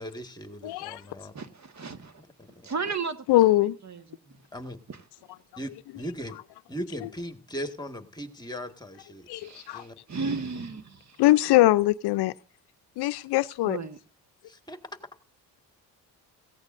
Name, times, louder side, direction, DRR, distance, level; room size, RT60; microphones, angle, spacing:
voice 1, 0.0-1.3 2.2-2.5 4.5-4.8 5.6-6.4 6.7-10.0 14.5-14.8, equal, 10° left, 1.8 m, -38 dB
voice 2, 0.6-1.0 3.3-3.8 9.3-9.8 11.2-12.3 13.0-13.8, left 16 dB, 70° left, 0.6 m, -22 dB
voice 3, 1.3-2.1 2.6-4.0 4.9-5.0 9.3-11.2 13.6-14.0, right 4 dB, 40° right, 1.6 m, -35 dB
17.5 x 16.0 x 2.6 m
supercardioid pair, 60°, 41 cm